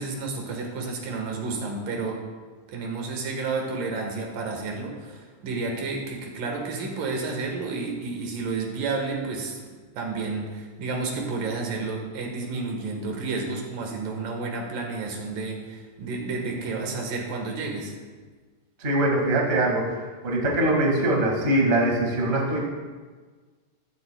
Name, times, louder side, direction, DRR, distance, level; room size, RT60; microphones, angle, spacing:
voice 1, 0.0-2.2 2.7-9.6 9.9-17.9, right 3 dB, 75° right, 1 dB, 3.1 m, -31 dB
voice 2, 18.8-19.9 20.2-22.7, right 1 dB, 25° right, -1 dB, 1.6 m, -22 dB
15.0 x 13.5 x 2.3 m, 1.4 s
omnidirectional pair, 4.0 m